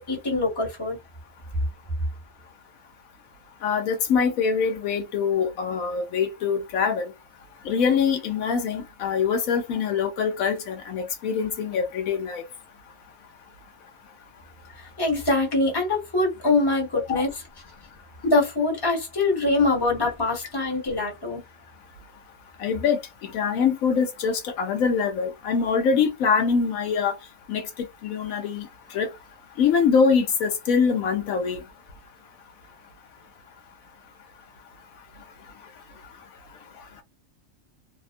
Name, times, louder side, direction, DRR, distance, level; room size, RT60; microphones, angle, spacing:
voice 1, 0.1-1.0 14.8-17.3 18.2-21.4, left 2 dB, 20° left, 1.1 m, -24 dB
voice 2, 3.6-7.1 7.6-12.4 17.1-17.2 22.6-27.2 27.5-27.7 28.0-29.1 29.6-31.6, left 6 dB, 80° left, 1.1 m, -24 dB
2.7 x 2.3 x 2.5 m
omnidirectional pair, 1.4 m